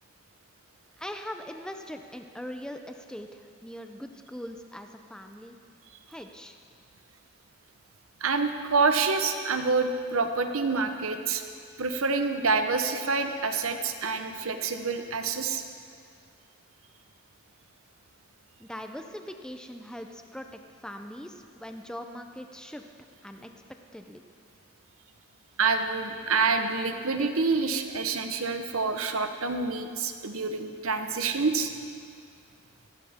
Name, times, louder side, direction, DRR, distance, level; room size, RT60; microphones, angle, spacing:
voice 1, 1.0-5.6 6.1-6.6 18.6-22.9 23.2-23.5 23.9-24.2, equal, 5° left, 5 dB, 0.6 m, -41 dB
voice 2, 8.2-11.4 11.8-15.6 25.6-31.7, right 4 dB, 85° right, 7 dB, 1.0 m, -27 dB
17.5 x 15.5 x 3.6 m, 2.2 s
head